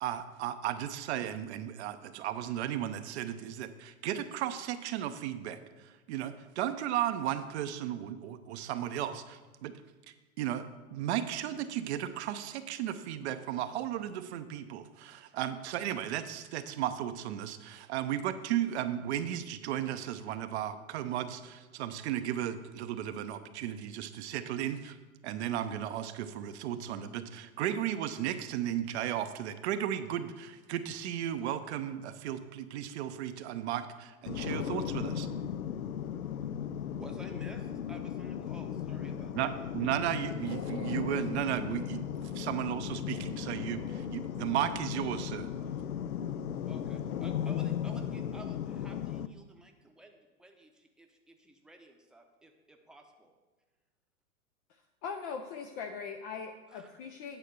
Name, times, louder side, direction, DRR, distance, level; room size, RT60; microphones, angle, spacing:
voice 1, 0.0-9.7 10.4-10.7 10.9-25.0 25.2-35.3 39.3-45.5, right 11 dB, 50° right, 9 dB, 0.7 m, -35 dB
sound 1, 34.3-49.3, left 9 dB, 85° left, 0.5 m, -36 dB
voice 2, 37.0-40.3 46.6-53.3 56.7-56.9, right 1 dB, ahead, 3 dB, 0.8 m, -53 dB
voice 3, 55.0-57.4, left 5 dB, 25° left, 5 dB, 0.4 m, -40 dB
9.1 x 4.5 x 6.5 m, 1.3 s
hypercardioid pair, 105°, 42 cm